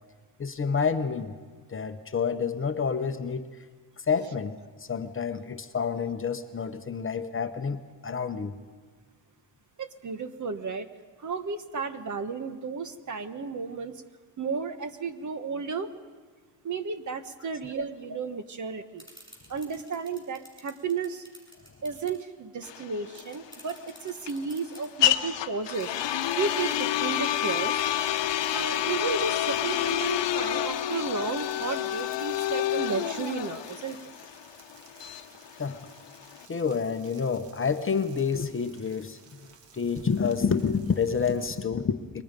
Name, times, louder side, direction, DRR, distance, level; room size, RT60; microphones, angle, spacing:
voice 1, 0.4-1.3 1.7-3.5 4.1-8.6 35.6-35.9 36.5-39.4 39.7-42.2, left 6 dB, 30° left, 7 dB, 0.9 m, -28 dB
voice 2, 9.8-10.9 11.2-14.0 14.4-15.9 16.6-19.0 19.5-21.2 21.8-25.9 26.4-27.8 28.5-34.0, right 5 dB, 40° right, 10 dB, 1.2 m, -33 dB
sound 1, 19.0-22.2 22.6-22.7 22.9-24.9, equal, 10° right, 7.8 m, -50 dB
sound 2, 22.6-36.5, left 12 dB, 70° left, 1.0 m, -29 dB
sound 3, 25.7-41.7, right 5 dB, 70° right, 1.9 m, -53 dB
29.0 x 23.0 x 5.3 m, 1.5 s
cardioid pair, 135°, 44 cm